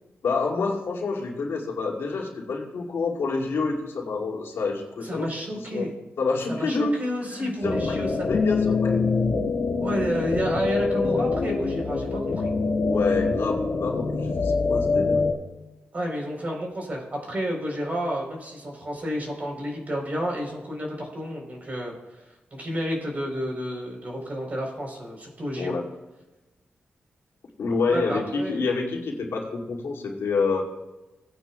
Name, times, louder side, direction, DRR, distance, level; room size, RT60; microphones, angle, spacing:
voice 1, 0.2-5.9 6.2-7.0 7.3-9.0 12.8-15.2 25.5-25.8 27.6-30.6, left 4 dB, 85° left, -3 dB, 2.4 m, -28 dB
voice 2, 5.0-5.9 6.5-8.3 9.8-12.5 15.9-21.9 22.5-25.7 27.9-28.7, equal, 40° right, 0 dB, 3.9 m, -30 dB
sound 1, 7.6-15.3, left 4 dB, 70° left, 1.4 m, -25 dB
19.5 x 9.1 x 2.3 m, 1.1 s
wide cardioid pair, 120°, 4 cm